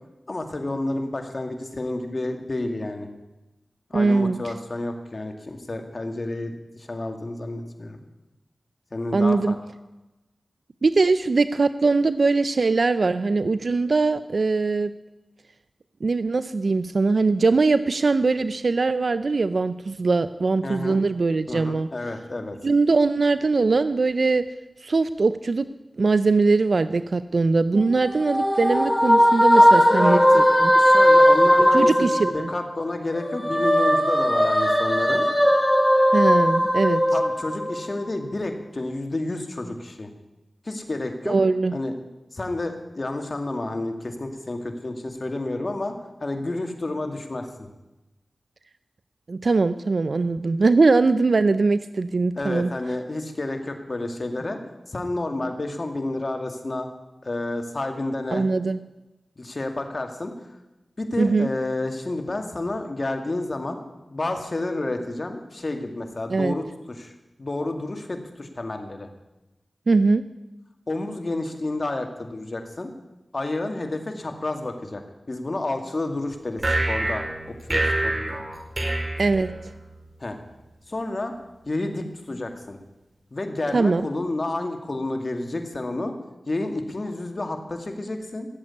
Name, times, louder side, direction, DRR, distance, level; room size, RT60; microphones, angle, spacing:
voice 1, 0.3-3.1 3.9-8.0 8.9-9.5 20.6-21.0 21.5-22.6 29.5-30.4 30.7-35.3 37.1-40.1 40.7-41.4 41.7-41.9 42.3-45.9 46.2-47.7 52.4-54.6 54.9-56.9 57.2-58.5 59.4-60.3 61.0-63.8 64.1-67.1 67.4-69.1 70.9-72.9 73.3-75.0 75.3-76.6 76.9-77.3 77.7-78.4 80.2-80.4 80.9-81.3 81.7-82.8 83.3-86.1 86.5-88.5, left 2 dB, 50° left, 5 dB, 2.4 m, -30 dB
voice 2, 3.9-4.5 9.1-9.6 10.8-14.9 16.0-21.9 22.6-24.4 24.8-25.6 26.0-30.7 31.7-32.5 36.1-37.0 41.3-41.7 49.3-52.7 58.3-58.8 61.2-61.5 66.3-66.5 69.9-70.2 79.2-79.5 83.7-84.0, right 3 dB, 70° right, 13 dB, 0.5 m, -21 dB
sound 1, 27.8-32.8 33.1-37.9, equal, 10° left, 3.7 m, -18 dB
sound 2, 76.6-80.0, right 1 dB, 45° right, 4.9 m, -26 dB
16.0 x 8.1 x 9.9 m, 1.0 s
cardioid pair, 45°, 0 cm